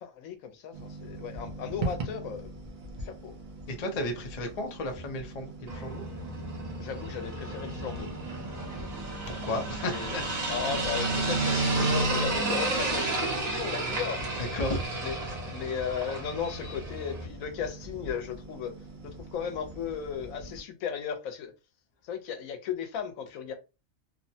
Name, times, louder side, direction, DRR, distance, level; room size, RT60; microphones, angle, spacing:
voice 1, 0.0-2.5 3.0-3.3 6.8-8.1 9.9-14.2 15.0-15.2 15.4-18.7 19.0-21.5 22.0-23.5, left 7 dB, 85° left, 1.0 m, -36 dB
sound 1, 0.7-20.6, right 2 dB, 55° right, 0.6 m, -42 dB
voice 2, 3.7-6.0 9.3-10.5 14.4-14.8, left 1 dB, 45° left, 0.5 m, -33 dB
sound 2, 5.7-17.2, right 2 dB, 80° right, 1.4 m, -31 dB
3.0 x 2.1 x 2.7 m
omnidirectional pair, 1.4 m